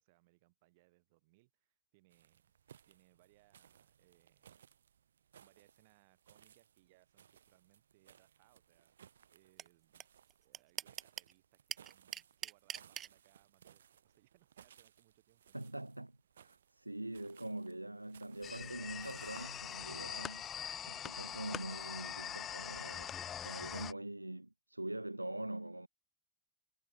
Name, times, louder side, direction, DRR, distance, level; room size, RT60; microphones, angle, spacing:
voice 1, 0.0-2.5 2.8-4.6 5.4-10.1 10.4-15.8, right 22 dB, 50° right, 6.9 m, -71 dB
sound 1, 2.1-19.8, right 9 dB, 65° right, 5.7 m, -64 dB
sound 2, 9.6-9.7 10.0-10.1 10.3-11.3 11.7-13.1, right 10 dB, 25° right, 0.6 m, -41 dB
voice 2, 15.5-20.5 20.9-25.9, right 1 dB, 85° right, 0.3 m, -44 dB
sound 3, 18.4-23.9, left 9 dB, 25° left, 0.5 m, -43 dB
figure-of-eight pair, 90°, 0 cm